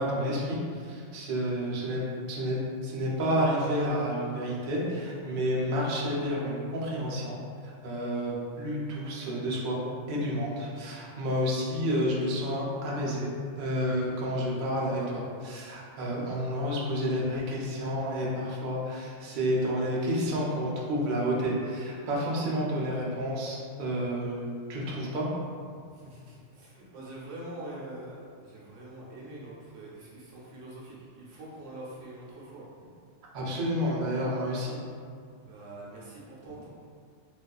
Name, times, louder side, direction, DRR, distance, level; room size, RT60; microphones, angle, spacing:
voice 1, 0.0-2.0 2.3-13.3 13.6-25.3 33.3-34.8, equal, 60° right, -5 dB, 0.5 m, -30 dB
voice 2, 25.7-32.7 35.4-36.7, right 1 dB, 85° right, -6 dB, 1.0 m, -44 dB
2.4 x 2.3 x 2.2 m, 2.2 s
omnidirectional pair, 1.2 m